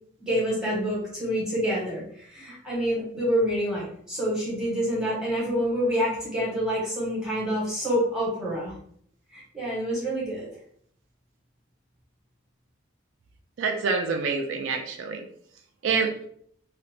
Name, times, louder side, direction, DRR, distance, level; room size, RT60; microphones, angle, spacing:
voice 1, 0.2-8.7 9.3-10.5, equal, 5° right, -7 dB, 1.0 m, -27 dB
voice 2, 13.6-15.2 15.8-16.3, right 4 dB, 75° right, 4 dB, 0.3 m, -27 dB
2.9 x 2.1 x 2.6 m, 0.64 s
head